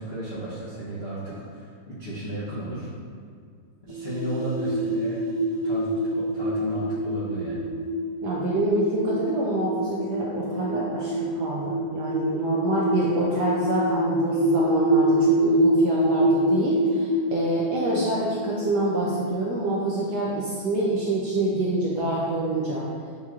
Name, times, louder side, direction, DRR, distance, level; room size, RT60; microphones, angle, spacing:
voice 1, 0.0-2.9 3.9-5.2 5.6-7.6, right 1 dB, 60° left, -11 dB, 0.6 m, -33 dB
sound 1, 3.9-20.2, right 1 dB, 55° right, 1.2 m, -26 dB
voice 2, 8.2-22.8, right 2 dB, 75° right, -5 dB, 0.9 m, -26 dB
6.7 x 2.9 x 2.4 m, 2.2 s
omnidirectional pair, 2.3 m